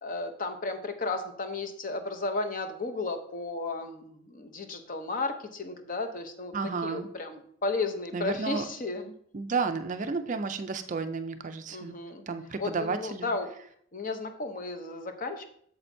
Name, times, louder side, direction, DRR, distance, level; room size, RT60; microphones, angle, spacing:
voice 1, 0.0-6.5 6.8-9.1 11.7-12.2 12.6-13.5 13.9-15.5, left 3 dB, 40° left, 6 dB, 0.7 m, -34 dB
voice 2, 6.5-7.1 8.1-8.6 9.3-11.9 12.3-13.3, right 4 dB, 35° right, 9 dB, 0.4 m, -32 dB
8.7 x 6.9 x 2.7 m, 0.65 s
head